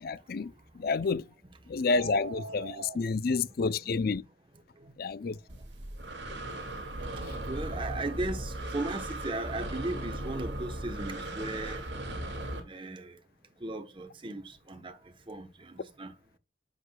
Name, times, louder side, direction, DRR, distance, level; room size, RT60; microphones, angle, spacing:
voice 1, 0.0-0.5 0.8-1.2 1.7-4.2 5.0-5.4, left 4 dB, 50° left, 0.4 m, -29 dB
sound 1, 1.8-3.0, right 3 dB, 85° right, 1.4 m, -41 dB
voice 2, 3.3-4.1 4.5-5.9 6.8-13.2 13.6-16.2, right 2 dB, 25° right, 1.0 m, -39 dB
Breathing, 5.5-12.6, right 1 dB, 60° right, 2.2 m, -37 dB
9.9 x 6.4 x 2.2 m
head